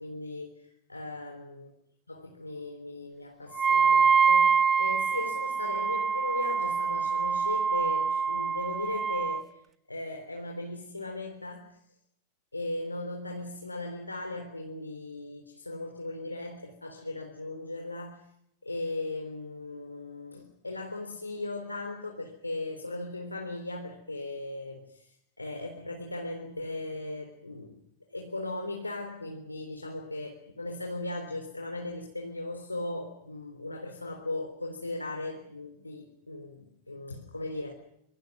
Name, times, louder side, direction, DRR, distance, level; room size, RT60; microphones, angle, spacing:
voice 1, 0.0-1.7 2.1-9.6 9.9-11.8 12.5-18.2 18.6-27.8 28.1-37.7, left 2 dB, 85° left, 3 dB, 3.7 m, -38 dB
Wind instrument woodwind instrument, 3.5-9.4, right 6 dB, 20° right, 1.0 m, -25 dB
27.5 x 26.5 x 6.1 m, 0.75 s
figure-of-eight pair, 90°, 0 cm